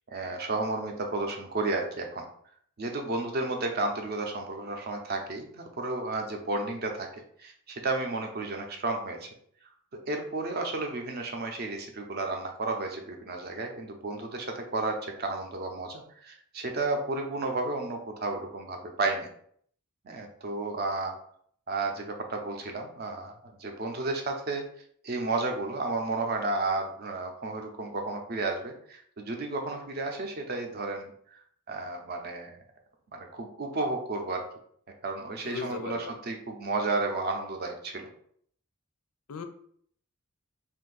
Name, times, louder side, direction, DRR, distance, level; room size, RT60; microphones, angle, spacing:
voice 1, 0.1-2.2 2.8-9.3 10.1-19.3 20.0-21.1 21.7-24.6 25.0-31.4 31.7-32.6 33.1-34.4 35.0-38.1, right 3 dB, 45° right, 3 dB, 0.6 m, -32 dB
voice 2, 35.4-36.1 39.3-39.4, left 5 dB, 75° left, 8 dB, 0.4 m, -37 dB
2.6 x 2.5 x 3.9 m, 0.63 s
head